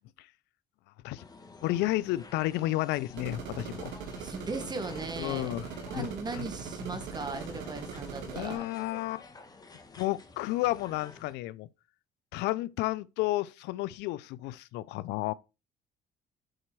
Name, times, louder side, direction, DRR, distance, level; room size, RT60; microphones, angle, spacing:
sound 1, 1.2-11.3, left 3 dB, 20° left, 1.3 m, -51 dB
voice 1, 1.6-3.9 5.2-6.1 6.4-6.5 8.3-9.2 9.9-11.7 12.3-15.3, left 17 dB, 90° left, 0.5 m, -32 dB
sound 2, 3.2-8.6, right 6 dB, 90° right, 1.7 m, -41 dB
voice 2, 4.2-5.6 5.9-8.7, right 3 dB, 25° right, 1.5 m, -38 dB
7.9 x 4.2 x 6.0 m
cardioid pair, 110°, 17 cm